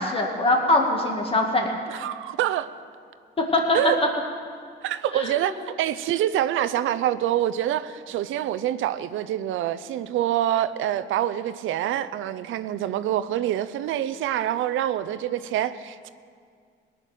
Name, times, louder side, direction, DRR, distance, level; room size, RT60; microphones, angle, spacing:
voice 1, 0.0-1.7 3.4-3.8 5.1-5.6, left 2 dB, 30° left, 1 dB, 2.2 m, -23 dB
voice 2, 1.9-2.7 3.7-4.0 4.8-16.1, right 12 dB, 80° right, 13 dB, 0.6 m, -26 dB
18.0 x 6.7 x 9.1 m, 2.2 s
cardioid pair, 90°, 20 cm